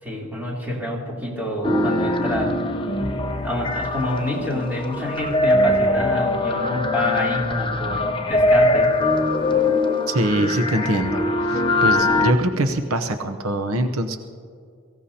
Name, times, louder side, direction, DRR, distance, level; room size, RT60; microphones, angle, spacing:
voice 1, 0.0-2.5 3.4-8.9, left 1 dB, 10° right, -5 dB, 3.4 m, -27 dB
sound 1, 1.6-12.3, left 2 dB, 25° left, 0.9 m, -22 dB
voice 2, 10.1-14.2, right 1 dB, 80° right, 7 dB, 0.9 m, -23 dB
23.5 x 16.0 x 2.9 m, 2.2 s
head